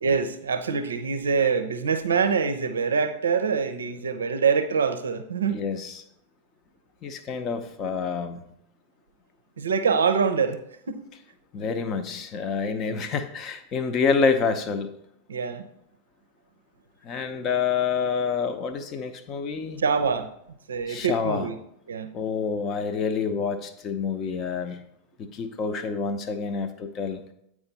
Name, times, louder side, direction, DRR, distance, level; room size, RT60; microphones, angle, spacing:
voice 1, 0.0-5.7 9.6-10.6 10.9-11.0 15.3-15.6 19.8-20.3 20.7-21.6 21.9-22.1, right 5 dB, 70° right, 10 dB, 0.5 m, -25 dB
voice 2, 5.5-6.0 7.0-8.4 11.5-14.9 17.0-19.8 20.9-21.5 22.1-24.8 25.2-27.2, left 5 dB, 30° left, 9 dB, 0.7 m, -27 dB
8.7 x 4.8 x 4.0 m, 0.74 s
figure-of-eight pair, 90°, 0 cm